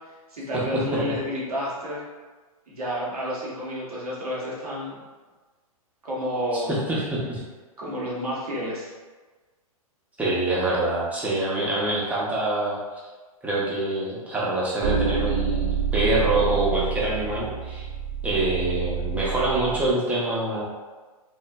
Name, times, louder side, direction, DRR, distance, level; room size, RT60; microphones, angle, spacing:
voice 1, 0.3-2.0 2.7-5.0 6.0-6.7 7.8-8.9, equal, 85° right, -6 dB, 1.0 m, -30 dB
voice 2, 6.5-7.4 10.2-12.8 13.4-17.8 18.2-20.7, right 2 dB, 10° right, -6 dB, 0.6 m, -25 dB
sound 1, 14.8-19.9, right 7 dB, 50° right, 0.5 m, -28 dB
3.0 x 2.4 x 2.2 m, 1.3 s
hypercardioid pair, 120°, 19 cm